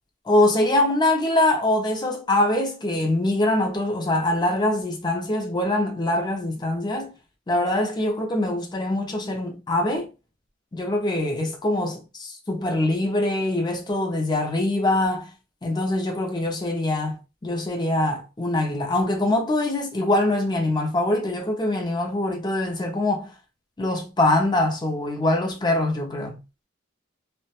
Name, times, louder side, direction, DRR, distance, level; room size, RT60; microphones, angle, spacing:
voice 1, 0.3-7.1 7.5-10.1 10.7-15.3 15.6-23.3 23.8-26.4, left 1 dB, 20° left, 0.5 m, -23 dB
2.3 x 2.1 x 2.8 m
head